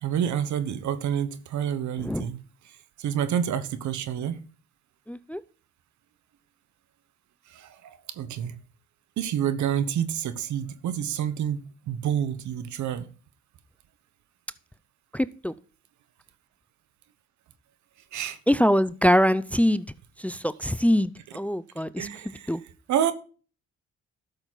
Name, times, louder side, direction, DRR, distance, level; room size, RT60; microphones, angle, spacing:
voice 1, 0.0-4.4 7.5-8.6 9.2-13.1 18.1-18.4 22.0-22.5 22.9-23.1, right 9 dB, 80° right, 1.2 m, -29 dB
voice 2, 5.1-5.4 15.1-15.5 18.5-19.8 20.2-22.1 22.5-22.6, equal, 5° left, 0.5 m, -23 dB
12.5 x 7.0 x 4.0 m
cardioid pair, 70°, 29 cm